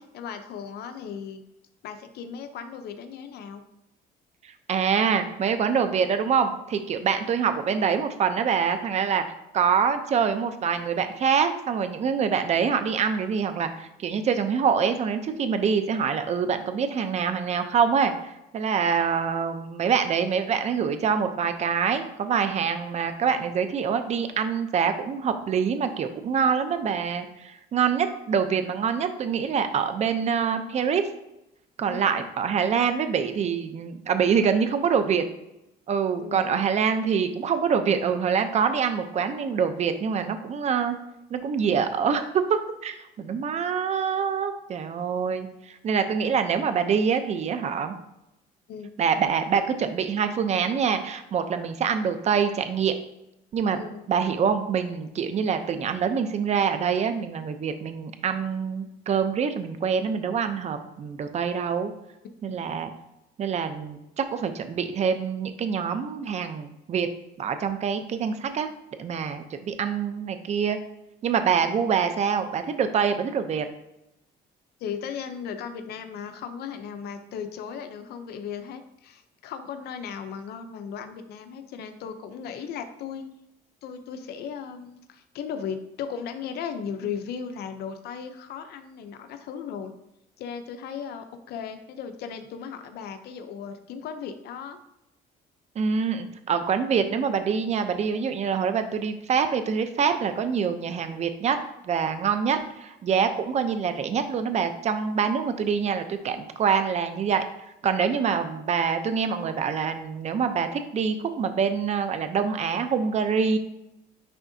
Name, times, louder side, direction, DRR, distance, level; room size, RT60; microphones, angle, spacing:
voice 1, 0.1-1.4 1.8-3.6 31.8-32.3 36.2-36.6 48.7-48.9 53.7-54.0 62.5-62.6 74.8-83.2 83.8-89.9 90.4-94.8, left 7 dB, 70° left, 8 dB, 0.6 m, -36 dB
voice 2, 4.7-9.2 9.5-31.0 31.8-35.2 35.9-41.0 41.3-47.9 49.0-52.9 53.5-53.8 54.1-61.9 62.4-62.9 63.4-67.1 67.4-68.7 69.0-70.8 71.2-73.7 95.8-101.6 101.8-107.4 107.8-113.6, right 6 dB, 40° right, 8 dB, 0.6 m, -25 dB
10.0 x 3.5 x 2.7 m, 0.86 s
cardioid pair, 110°, 17 cm